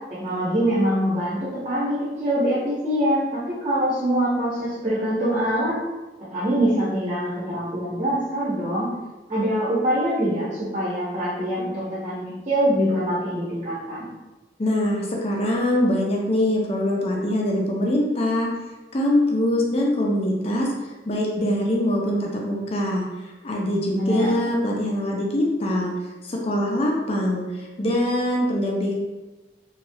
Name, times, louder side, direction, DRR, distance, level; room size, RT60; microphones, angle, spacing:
voice 1, 0.2-5.8 6.3-8.9 9.3-14.1 23.9-24.3, equal, 30° right, -8 dB, 0.8 m, -24 dB
voice 2, 14.6-18.5 18.9-20.7 21.0-23.0 23.4-25.9 26.2-28.9, left 1 dB, 35° left, -2 dB, 0.4 m, -23 dB
3.0 x 2.3 x 2.6 m, 1.1 s
head